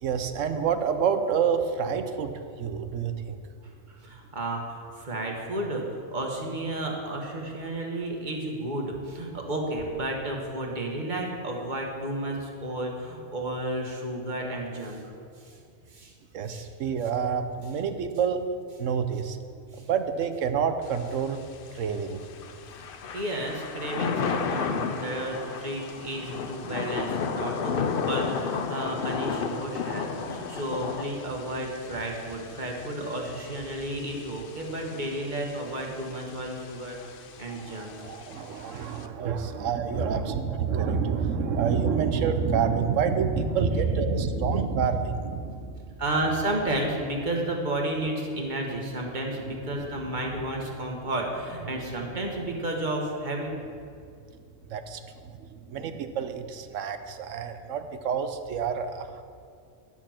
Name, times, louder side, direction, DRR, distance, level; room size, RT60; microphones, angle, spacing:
voice 1, 0.0-3.4 16.3-18.4 18.8-19.4 19.8-21.4 21.7-22.2 37.0-37.1 37.5-46.0 49.8-49.9 54.7-59.2, right 6 dB, 90° right, 8 dB, 1.1 m, -28 dB
voice 2, 3.9-15.0 15.4-15.6 15.9-16.1 16.5-16.6 19.7-19.9 23.1-27.8 28.1-37.9 46.0-53.5, right 1 dB, 40° right, 0 dB, 1.5 m, -32 dB
Thunder / Rain, 20.8-39.1, left 6 dB, 55° left, 0.7 m, -34 dB
11.0 x 7.4 x 5.8 m, 2.3 s
omnidirectional pair, 1.3 m